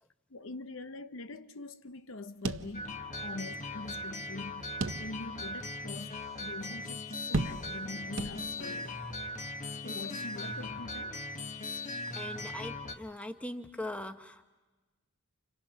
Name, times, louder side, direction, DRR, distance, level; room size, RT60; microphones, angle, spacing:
voice 1, 0.3-7.0 7.3-9.1 9.8-11.2, left 2 dB, 60° left, 0.8 m, -44 dB
sound 1, 2.4-3.3 3.6-3.7 4.8-5.5 6.0-6.1 7.3-7.9 8.2-8.8, right 3 dB, 60° right, 0.8 m, -35 dB
sound 2, 2.7-13.0, left 2 dB, 35° left, 1.7 m, -39 dB
voice 2, 12.1-14.4, left 1 dB, 5° left, 1.1 m, -40 dB
29.5 x 28.5 x 5.8 m
head